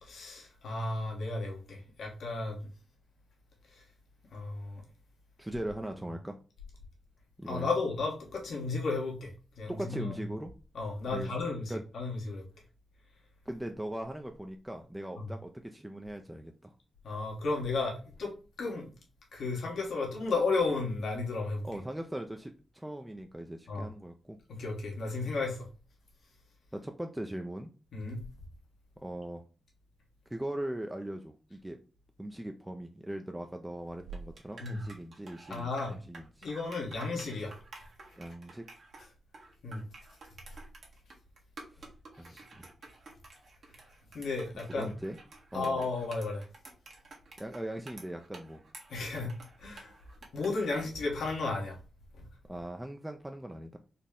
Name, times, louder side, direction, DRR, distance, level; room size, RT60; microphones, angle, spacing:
voice 1, 0.0-2.6 3.7-3.8 4.3-4.8 7.5-9.3 9.6-10.2 10.7-12.4 15.2-15.3 17.0-18.3 18.6-18.9 19.3-21.6 23.7-23.9 24.5-25.7 27.9-28.2 34.6-34.8 35.5-36.0 36.4-37.5 39.6-39.8 44.1-44.9 45.5-46.4 48.9-49.3 49.6-49.9 50.3-51.8 52.2-52.3, left 3 dB, 80° left, 1.2 m, -33 dB
voice 2, 5.4-6.4 7.4-7.7 9.7-10.5 11.1-11.3 11.7-11.8 13.5-16.7 21.6-24.4 26.7-27.7 29.0-29.4 30.3-31.8 32.2-36.5 38.2-38.6 41.7-41.9 42.2-42.6 44.7-45.2 45.5-45.8 47.4-48.6 52.5-53.8, right 1 dB, 10° right, 0.4 m, -40 dB
sound 1, 33.8-51.6, right 3 dB, 65° right, 1.1 m, -51 dB
4.1 x 2.1 x 3.6 m
cardioid pair, 70°, 0 cm